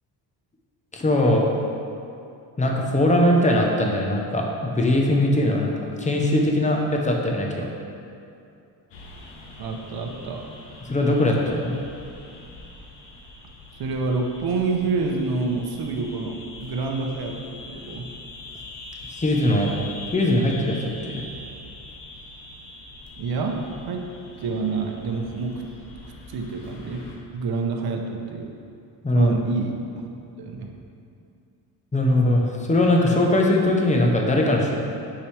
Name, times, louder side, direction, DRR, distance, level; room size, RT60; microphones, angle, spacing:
voice 1, 0.9-1.5 2.6-7.7 10.9-11.7 19.1-19.8 20.1-21.2 29.0-29.3 31.9-34.7, left 1 dB, 15° left, 0 dB, 0.7 m, -21 dB
sound 1, 8.9-27.2, left 2 dB, 75° left, 1.0 m, -43 dB
voice 2, 9.6-10.4 13.7-18.1 23.2-23.6 23.9-24.0 24.4-25.5 26.0-27.0 27.3-28.5 29.1-30.1 30.4-30.7, right 4 dB, 60° right, 2 dB, 0.7 m, -28 dB
5.8 x 4.9 x 3.3 m, 2.5 s
cardioid pair, 115°, 43 cm